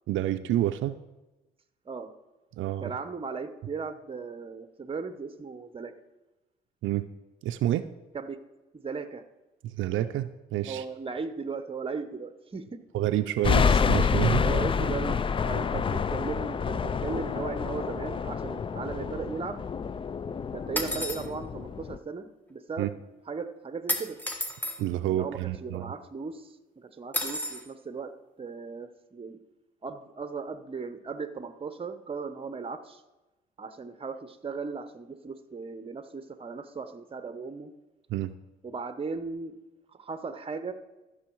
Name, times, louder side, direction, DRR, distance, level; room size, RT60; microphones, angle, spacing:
voice 1, 0.1-1.0 2.6-2.9 6.8-7.1 7.4-7.9 9.6-10.8 12.9-14.4 22.8-22.9 24.8-25.9 38.1-38.3, right 13 dB, 80° right, 10 dB, 0.5 m, -28 dB
voice 2, 2.8-5.9 8.1-8.4 8.7-9.2 10.6-12.8 13.2-13.4 14.3-19.6 20.5-24.2 25.1-28.1 28.4-29.4 29.8-33.0 33.6-37.7 38.6-39.5 39.9-40.7, right 4 dB, 30° right, 10 dB, 0.9 m, -37 dB
sound 1, 13.4-22.0, left 6 dB, 25° left, 0.4 m, -28 dB
sound 2, 20.8-21.3 23.9-24.8 27.1-27.6, left 1 dB, 10° left, 1.4 m, -31 dB
14.0 x 6.4 x 4.6 m, 1.1 s
cardioid pair, 90°, 20 cm